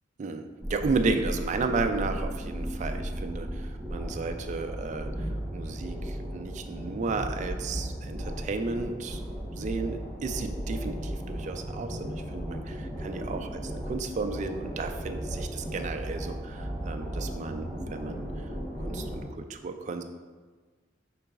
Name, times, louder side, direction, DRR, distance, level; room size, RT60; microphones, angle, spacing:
voice 1, 0.2-5.1 5.5-9.2 9.6-10.0 10.2-18.2 18.8-20.0, right 3 dB, 40° right, 7 dB, 0.3 m, -33 dB
sound 1, 0.6-19.3, equal, 5° left, 0.9 m, -35 dB
5.8 x 3.9 x 2.3 m, 1.4 s
head